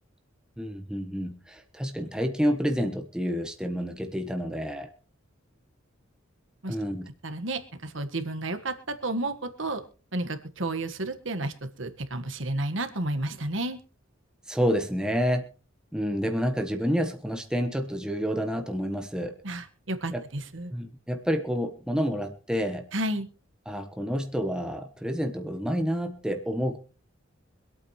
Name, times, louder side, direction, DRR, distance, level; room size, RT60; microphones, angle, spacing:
voice 1, 0.6-4.9 6.7-7.1 14.5-15.5 15.9-19.4 20.1-20.2 20.7-22.9 23.7-26.8, equal, 5° right, 5 dB, 1.1 m, -29 dB
voice 2, 7.2-9.8 10.1-11.5 11.8-13.8 19.4-20.7 22.9-23.3, right 2 dB, 65° right, 8 dB, 1.6 m, -31 dB
25.0 x 8.7 x 3.1 m, 0.37 s
head